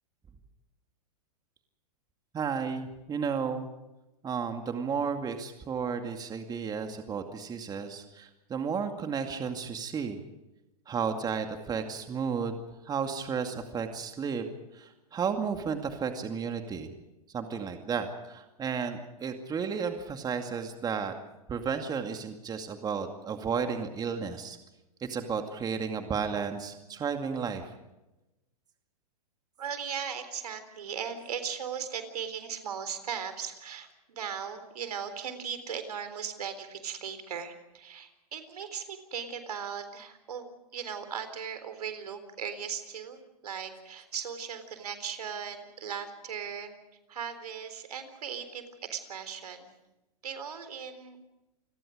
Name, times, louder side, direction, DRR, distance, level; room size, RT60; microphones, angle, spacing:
voice 1, 2.3-3.7 4.2-10.2 10.9-12.6 12.9-14.4 14.7-16.9 17.3-21.1 21.5-24.6 25.0-27.7, right 6 dB, 20° right, 6 dB, 2.3 m, -33 dB
voice 2, 29.6-46.7 47.1-49.7 50.2-51.3, right 7 dB, 75° right, 10 dB, 3.9 m, -38 dB
28.5 x 21.0 x 5.1 m, 0.98 s
hypercardioid pair, 115°, 20 cm